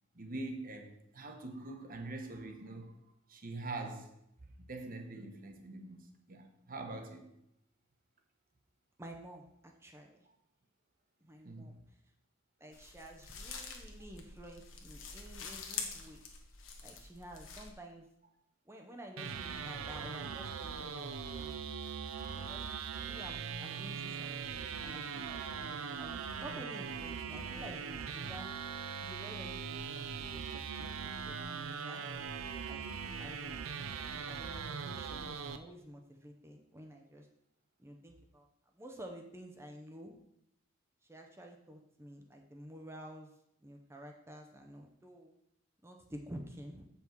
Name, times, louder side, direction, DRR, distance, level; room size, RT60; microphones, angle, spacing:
voice 1, 0.1-4.1 4.4-7.3 11.4-11.8, right 2 dB, 40° right, 5 dB, 1.0 m, -44 dB
voice 2, 9.0-10.3 11.2-11.8 12.6-16.2 16.8-18.1 18.7-21.6 22.3-22.6 23.1-25.4 26.0-28.5 29.0-32.0 32.7-32.8 33.2-33.6 34.3-37.3 37.8-38.5 38.8-40.2 41.0-43.3 43.6-45.3 45.8-46.8, equal, 10° right, 2 dB, 0.6 m, -51 dB
sound 1, 12.7-17.7, left 5 dB, 70° left, 1.3 m, -46 dB
sound 2, 19.2-35.6, right 6 dB, 85° right, 0.6 m, -41 dB
7.6 x 5.7 x 4.5 m, 0.79 s
head